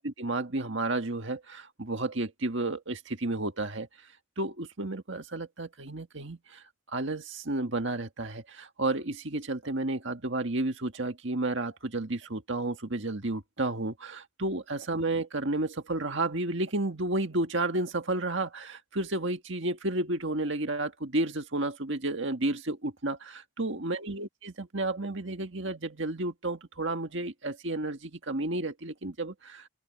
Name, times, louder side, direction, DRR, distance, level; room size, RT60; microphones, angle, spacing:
voice 1, 0.0-3.9 4.4-6.6 6.9-29.7, right 2 dB, 55° right, 1.8 m, -32 dB
head